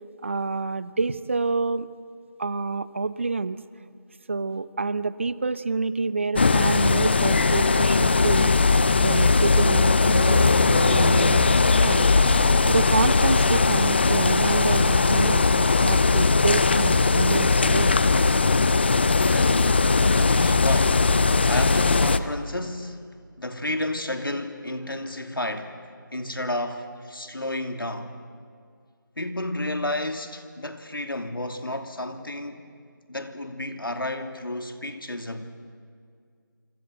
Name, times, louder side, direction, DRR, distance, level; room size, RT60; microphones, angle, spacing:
voice 1, 0.2-1.9 2.4-3.6 4.3-8.6 9.0-11.5 11.8-12.4 12.7-18.0, right 4 dB, 35° right, 0.7 m, -27 dB
sound 1, 6.4-22.2, left 4 dB, 30° left, 0.7 m, -19 dB
voice 2, 19.3-21.1 21.5-23.0 23.4-25.8 26.1-28.2 29.2-32.6 33.1-35.4, left 1 dB, 85° left, 2.8 m, -31 dB
27.5 x 26.0 x 7.9 m
figure-of-eight pair, 165°, 11 cm